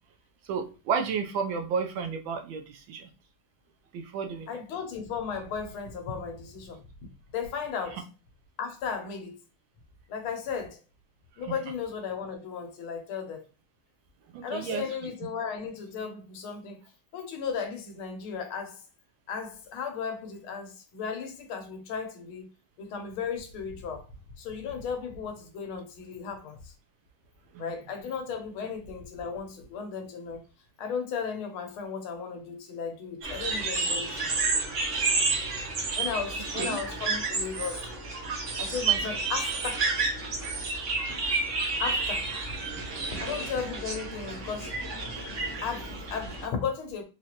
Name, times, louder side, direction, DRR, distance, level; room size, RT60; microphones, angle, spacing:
voice 1, 0.5-3.1 3.9-4.5 11.5-11.6 14.3-15.1 27.5-27.6 35.6-35.7 36.5-36.8 39.0-39.1 40.4-40.6 41.1-41.5 43.2-43.3, right 6 dB, 75° right, 1.3 m, -33 dB
voice 2, 4.5-6.8 7.3-8.0 8.6-9.4 10.1-10.8 11.4-13.4 14.4-16.8 17.1-18.8 19.3-22.5 22.8-24.1 24.4-26.7 27.6-30.4 30.8-34.4 35.9-37.8 38.6-39.9 41.8-42.3 42.8-44.8 45.6-47.0, left 6 dB, 80° left, 1.6 m, -35 dB
sound 1, 33.2-46.5, right 4 dB, 55° right, 0.9 m, -30 dB
4.4 x 2.4 x 2.9 m
omnidirectional pair, 2.3 m